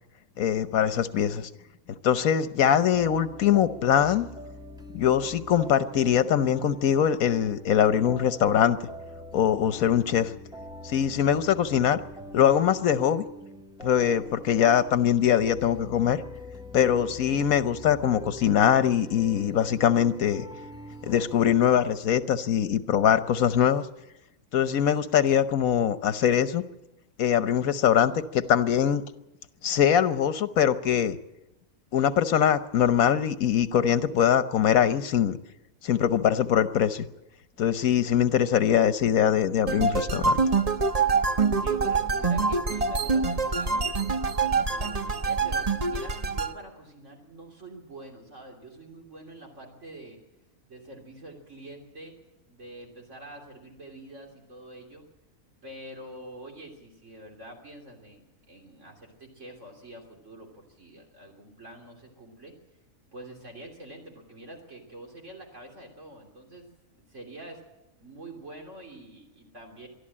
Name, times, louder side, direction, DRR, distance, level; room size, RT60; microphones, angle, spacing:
voice 1, 0.4-1.5 2.0-4.3 4.9-8.9 9.3-10.3 10.8-12.0 12.3-13.2 13.8-16.2 16.7-20.4 21.0-23.9 24.5-26.6 27.2-29.0 29.6-31.2 31.9-35.4 35.8-37.1 37.6-40.4, left 9 dB, 80° left, 12 dB, 1.4 m, -22 dB
sound 1, 2.9-21.5, equal, 5° right, 2.0 m, -44 dB
sound 2, 39.7-46.5, right 4 dB, 30° right, 0.9 m, -25 dB
voice 2, 41.5-43.9 44.4-50.2 50.7-52.1 52.5-55.0 55.6-62.5 63.1-66.7 67.1-67.6 68.0-69.9, right 1 dB, 60° right, 1 dB, 3.5 m, -46 dB
23.5 x 13.0 x 8.7 m, 0.93 s
omnidirectional pair, 1.5 m